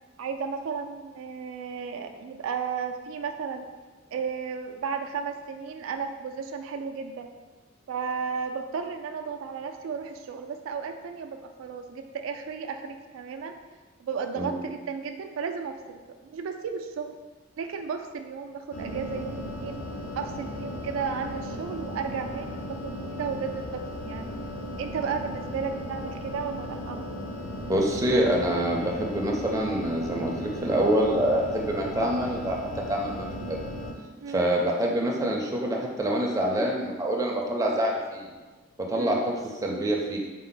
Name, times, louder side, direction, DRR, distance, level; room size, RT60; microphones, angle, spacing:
voice 1, 0.2-3.6 4.1-7.3 7.9-13.6 14.0-17.1 17.6-19.8 20.2-24.3 24.8-27.0 34.2-34.5 39.0-39.2, right 6 dB, 85° right, 5 dB, 0.3 m, -34 dB
sound 1, 18.7-33.9, left 1 dB, 80° left, 0.6 m, -36 dB
voice 2, 27.7-32.6 32.9-33.7 34.3-38.3 38.8-40.2, right 1 dB, 15° right, -1 dB, 0.4 m, -26 dB
4.3 x 2.0 x 3.8 m, 1.3 s
head